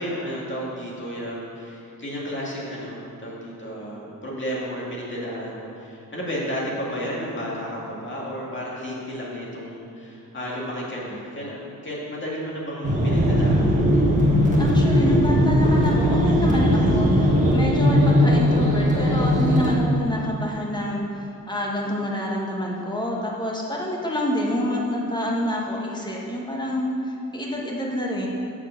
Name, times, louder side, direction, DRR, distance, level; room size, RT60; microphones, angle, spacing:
voice 1, 0.0-14.2, equal, 35° left, -5 dB, 2.2 m, -32 dB
sound 1, 12.8-19.8, equal, 20° right, 1.7 m, -19 dB
voice 2, 14.6-28.3, left 1 dB, 10° left, -2 dB, 1.4 m, -27 dB
7.2 x 7.0 x 6.8 m, 2.6 s
wide cardioid pair, 145°, 35 cm